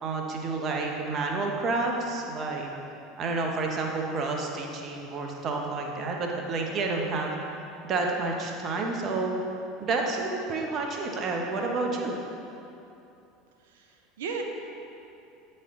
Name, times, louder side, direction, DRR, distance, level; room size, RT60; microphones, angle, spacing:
voice 1, 0.0-2.7 3.2-7.3 7.8-9.3 9.8-12.2, right 3 dB, 40° right, 1 dB, 1.0 m, -29 dB
voice 2, 13.6-14.4, right 5 dB, 75° right, 3 dB, 0.7 m, -36 dB
8.2 x 4.3 x 3.8 m, 2.7 s
hypercardioid pair, 75°, 0 cm